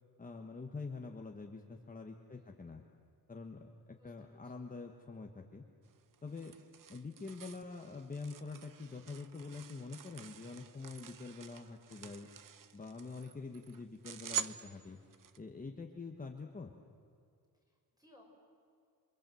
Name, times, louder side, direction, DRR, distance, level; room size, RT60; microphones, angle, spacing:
voice 1, 0.2-2.8 3.3-5.6 6.2-6.5 6.9-12.3 12.7-15.0 15.4-16.7, left 4 dB, 20° left, 2 dB, 1.3 m, -46 dB
voice 2, 2.3-2.6 4.0-4.6 17.7-18.2, left 1 dB, 10° right, -1 dB, 6.0 m, -65 dB
sound 1, 5.9-15.4, right 9 dB, 60° right, 0.9 m, -47 dB
28.0 x 24.0 x 7.8 m, 2.4 s
wide cardioid pair, 175°, 37 cm